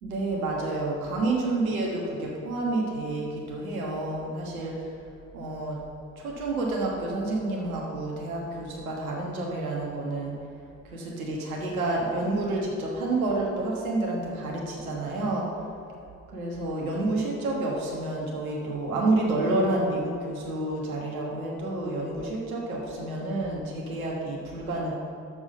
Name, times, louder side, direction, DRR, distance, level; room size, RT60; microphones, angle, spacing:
voice 1, 0.0-4.9 5.3-5.8 6.2-10.3 10.8-15.5 16.3-24.9, right 2 dB, 80° right, -2 dB, 1.4 m, -29 dB
6.8 x 6.1 x 6.4 m, 2.6 s
figure-of-eight pair, 50°, 42 cm